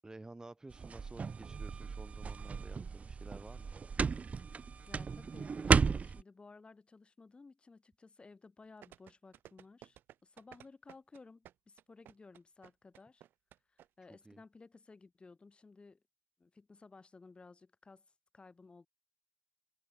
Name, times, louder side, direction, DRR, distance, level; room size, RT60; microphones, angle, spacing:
voice 1, 0.0-3.7 14.1-14.4, right 2 dB, 20° right, 5.2 m, -52 dB
sound 1, 0.7-6.2, right 5 dB, 40° right, 1.0 m, -34 dB
voice 2, 4.9-13.2 13.7-16.0 16.4-18.1 18.3-18.9, left 3 dB, 30° left, 7.2 m, -57 dB
sound 2, 8.8-13.9 14.1-14.2, right 12 dB, 80° right, 2.2 m, -56 dB
cardioid pair, 70°, 3 cm